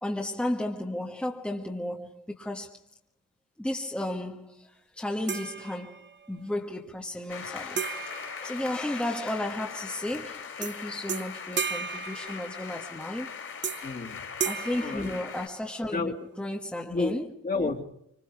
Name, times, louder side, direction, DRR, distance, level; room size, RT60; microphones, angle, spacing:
voice 1, 0.0-2.8 3.6-13.4 14.4-17.3 17.5-17.7, left 1 dB, 5° left, 1.4 m, -34 dB
sound 1, 5.3-6.3 7.8-9.3 10.6-10.8 11.1-12.9 13.6-14.0 14.4-15.8, right 6 dB, 35° right, 0.8 m, -35 dB
sound 2, 7.3-15.5, left 6 dB, 45° left, 3.4 m, -40 dB
voice 2, 13.8-14.3 14.7-15.1 15.9-16.3 16.9-17.8, left 3 dB, 25° left, 2.2 m, -31 dB
27.0 x 26.0 x 4.8 m
wide cardioid pair, 170°, 32 cm